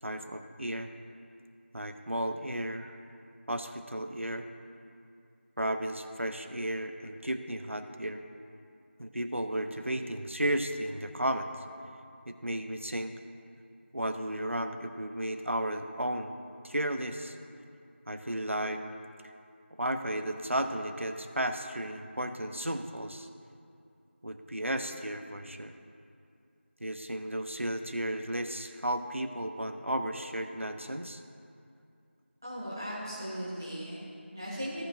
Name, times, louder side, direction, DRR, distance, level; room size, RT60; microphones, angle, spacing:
voice 1, 0.0-0.9 1.7-3.0 3.5-4.5 5.6-8.2 9.0-11.5 12.3-13.1 13.9-16.3 16.6-17.4 18.1-18.8 19.8-23.3 24.2-25.7 26.8-31.2, right 1 dB, 80° right, 6 dB, 0.9 m, -34 dB
voice 2, 32.4-34.8, equal, 15° right, -9 dB, 1.7 m, -38 dB
16.5 x 5.9 x 2.6 m, 2.5 s
figure-of-eight pair, 175°, 7 cm